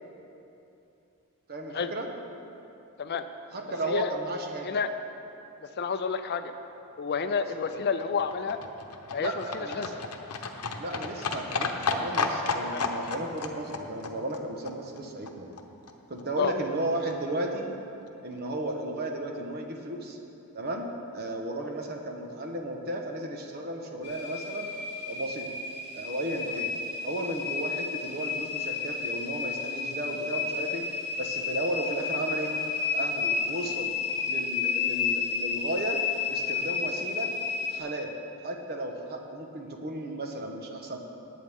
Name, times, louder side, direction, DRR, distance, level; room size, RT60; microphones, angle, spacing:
voice 1, 1.5-2.1 3.5-4.8 9.2-10.0 10.8-15.5 16.1-17.7 18.2-20.2 20.5-20.9 21.1-24.7 25.1-25.5 25.9-26.7 27.0-30.8 31.2-32.5 32.9-33.9 34.3-36.0 36.3-37.3 37.7-38.1 38.4-41.0, right 1 dB, 45° right, 2 dB, 1.1 m, -34 dB
voice 2, 5.8-6.5 7.0-8.6 9.1-9.9 12.6-12.9 16.4-16.5, left 5 dB, 45° left, 9 dB, 0.5 m, -30 dB
Livestock farm animals working animals, 7.4-15.6 15.9-16.0 16.2-16.3 16.5-16.6 16.8-16.9 17.1-17.2 17.4-17.5 17.7-17.8 18.1-18.2, left 4 dB, 80° left, 0.9 m, -33 dB
sound 1, 24.0-37.8, left 5 dB, 25° left, 2.8 m, -31 dB
19.0 x 8.5 x 3.6 m, 2.8 s
head